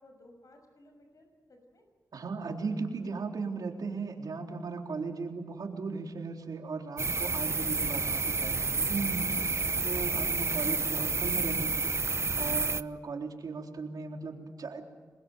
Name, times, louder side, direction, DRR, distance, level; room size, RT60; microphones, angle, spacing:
voice 1, 0.0-1.8 9.6-10.1, left 1 dB, 60° left, 5 dB, 6.4 m, -58 dB
voice 2, 2.1-9.3 9.8-11.8 12.4-14.9, right 4 dB, 90° right, 2 dB, 3.8 m, -37 dB
sound 1, 7.0-12.8, right 4 dB, 45° right, 0.8 m, -30 dB
27.5 x 22.0 x 8.0 m, 1.4 s
wide cardioid pair, 80°, 6 cm